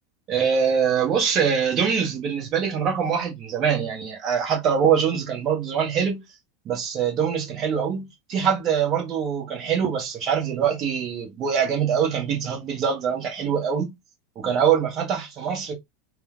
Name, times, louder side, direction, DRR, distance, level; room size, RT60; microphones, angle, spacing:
voice 1, 0.3-6.2 6.6-13.9 14.4-15.7, right 7 dB, 40° right, 1.0 m, -23 dB
3.0 x 2.1 x 2.4 m
figure-of-eight pair, 80°, 0 cm